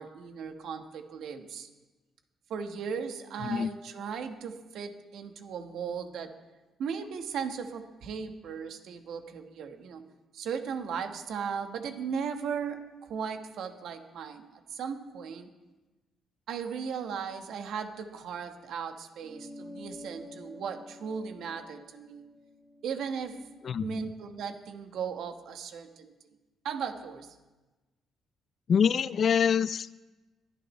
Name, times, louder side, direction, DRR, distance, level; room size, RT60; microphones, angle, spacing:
voice 1, 0.0-1.7 2.5-6.3 6.8-10.0 10.3-15.5 16.5-22.3 22.8-23.4 23.8-26.1 26.6-27.3, right 6 dB, 75° right, 6 dB, 1.3 m, -37 dB
sound 1, 19.2-24.0, left 1 dB, 5° left, 1.2 m, -49 dB
voice 2, 23.6-24.1 28.7-30.0, left 7 dB, 55° left, 18 dB, 0.3 m, -26 dB
22.5 x 9.3 x 3.2 m, 1.2 s
cardioid pair, 90°, 0 cm